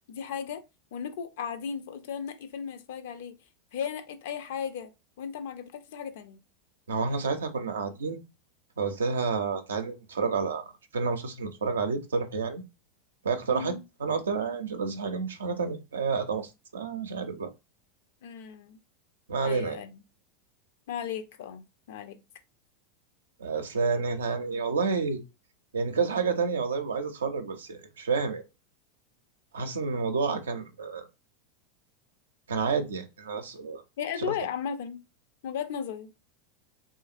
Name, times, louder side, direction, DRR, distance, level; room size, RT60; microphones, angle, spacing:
voice 1, 0.1-0.6 0.9-3.3 3.7-6.4 13.5-13.8 18.2-18.8 19.4-20.0 20.9-22.2 34.0-35.0 35.4-36.1, left 8 dB, 70° left, 0.4 m, -36 dB
voice 2, 6.9-8.2 8.8-10.7 10.9-12.6 13.2-17.5 19.3-19.8 23.4-25.2 25.7-28.4 29.5-31.1 32.5-33.8 34.2-34.3, right 5 dB, 85° right, 0.5 m, -29 dB
2.8 x 2.5 x 2.5 m
hypercardioid pair, 95°, 0 cm